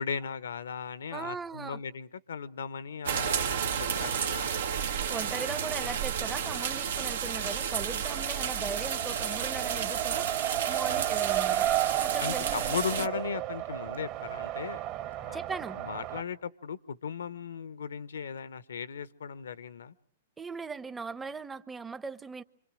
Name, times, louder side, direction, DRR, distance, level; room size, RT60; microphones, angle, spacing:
voice 1, 0.0-3.7 4.0-4.6 10.9-11.1 12.2-14.8 15.2-15.4 15.7-19.9, left 6 dB, 75° left, 1.0 m, -37 dB
voice 2, 1.1-1.8 5.1-11.7 12.0-13.1 15.3-15.8 20.4-22.4, right 4 dB, 10° right, 0.9 m, -39 dB
sound 1, 3.0-13.1, right 7 dB, 70° right, 1.1 m, -32 dB
Race car auto racing, 8.1-16.2, right 14 dB, 45° right, 1.4 m, -33 dB
26.5 x 25.5 x 6.4 m
hypercardioid pair, 110°, 0 cm